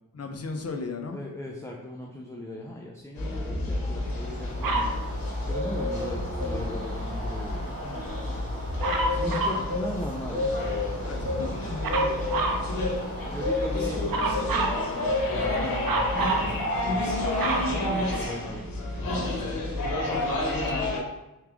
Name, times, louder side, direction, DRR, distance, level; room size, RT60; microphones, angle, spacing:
voice 1, 0.1-1.2 11.0-11.7 20.1-20.9, left 4 dB, 45° left, 4 dB, 0.7 m, -35 dB
voice 2, 1.1-4.9 5.5-8.1 9.2-10.5 12.3-12.8 13.3-14.7 14.9-17.3 17.6-19.5, left 1 dB, 10° left, -1 dB, 0.5 m, -39 dB
sound 1, 3.2-21.0, left 1 dB, 80° left, 1.0 m, -30 dB
Bird, 3.8-18.5, left 2 dB, 40° right, 1.3 m, -34 dB
Dog, 4.6-5.0 8.8-9.7 11.8-12.7 14.1-14.8 15.8-16.5 17.0-18.5 19.3-19.4, right 2 dB, 75° right, 0.7 m, -28 dB
3.6 x 3.2 x 3.5 m, 0.96 s
cardioid pair, 55°, 35 cm